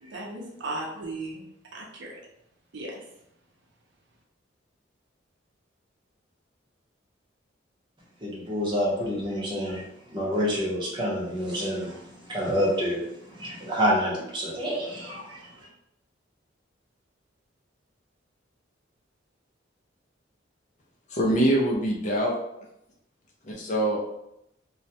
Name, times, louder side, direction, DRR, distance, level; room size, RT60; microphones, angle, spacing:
voice 1, 0.0-1.4 1.7-2.1 2.7-3.0, right 2 dB, 70° right, -2 dB, 0.6 m, -36 dB
voice 2, 8.2-9.8 10.1-13.0 13.3-15.5, equal, 25° right, -5 dB, 0.7 m, -28 dB
voice 3, 21.1-22.4 23.4-24.0, right 1 dB, 40° left, -2 dB, 0.4 m, -24 dB
2.2 x 2.1 x 2.7 m, 0.81 s
head